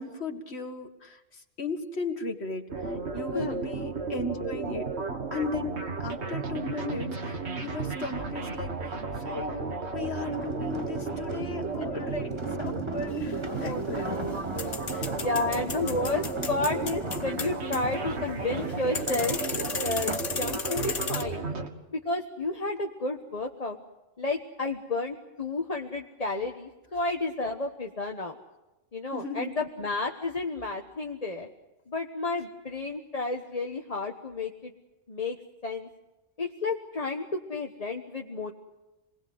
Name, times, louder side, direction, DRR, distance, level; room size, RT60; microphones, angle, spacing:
voice 1, 0.0-4.9 5.3-14.1 14.9-15.1 15.3-15.6 29.1-29.5, left 3 dB, 60° left, 4 dB, 2.2 m, -36 dB
sound 1, 2.7-21.7, right 4 dB, 65° right, 2.0 m, -34 dB
sound 2, 10.2-20.4 20.9-21.1, right 2 dB, 25° right, 1.4 m, -40 dB
sound 3, 13.1-21.2, left 5 dB, 90° left, 1.9 m, -36 dB
voice 2, 13.6-14.4 15.2-21.5 21.9-23.8 24.2-28.4 28.9-31.5 31.9-34.7 35.1-35.4 35.6-35.9 36.4-38.5, left 3 dB, 35° left, 3 dB, 1.3 m, -31 dB
28.0 x 20.0 x 7.9 m, 1.0 s
omnidirectional pair, 1.2 m